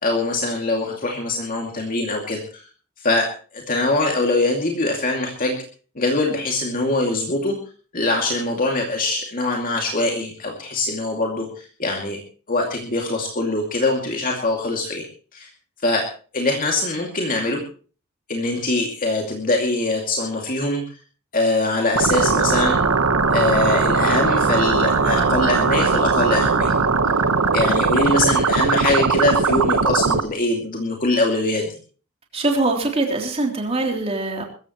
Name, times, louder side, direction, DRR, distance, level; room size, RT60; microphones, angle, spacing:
voice 1, 0.0-2.7 3.0-3.3 3.5-5.6 6.0-7.6 7.9-12.2 12.5-15.0 15.3-15.5 15.8-16.1 16.3-17.6 18.3-20.8 21.3-22.8 23.3-26.7 27.5-31.7, left 2 dB, 40° left, 1 dB, 2.4 m, -23 dB
sound 1, 22.0-30.2, right 4 dB, 75° right, 1.2 m, -19 dB
voice 2, 32.3-34.4, right 2 dB, 25° right, 2 dB, 3.4 m, -22 dB
22.5 x 14.5 x 3.1 m, 0.39 s
head